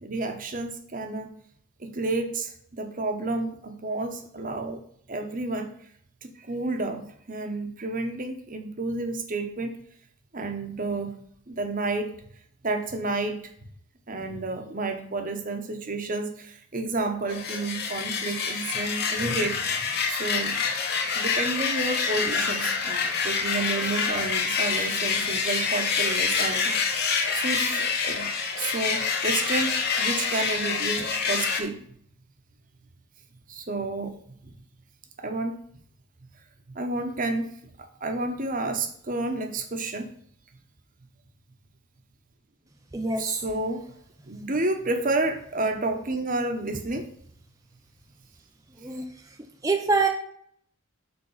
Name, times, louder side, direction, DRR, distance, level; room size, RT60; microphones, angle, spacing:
voice 1, 0.0-1.3 1.8-4.8 5.1-5.7 6.2-9.7 10.3-11.1 11.5-12.1 12.6-13.4 14.1-19.6 20.1-20.6 21.1-26.9 27.3-28.3 28.6-31.8 33.5-34.1 35.2-35.6 36.7-37.5 38.0-40.1 43.2-43.8 44.3-47.1, right 2 dB, 35° right, 6 dB, 1.0 m, -30 dB
sound 1, 17.3-31.6, left 5 dB, 45° left, 1.0 m, -27 dB
voice 2, 42.9-43.2 48.8-49.1 49.6-50.1, right 3 dB, 15° right, 4 dB, 0.5 m, -24 dB
7.0 x 4.4 x 5.7 m, 0.64 s
head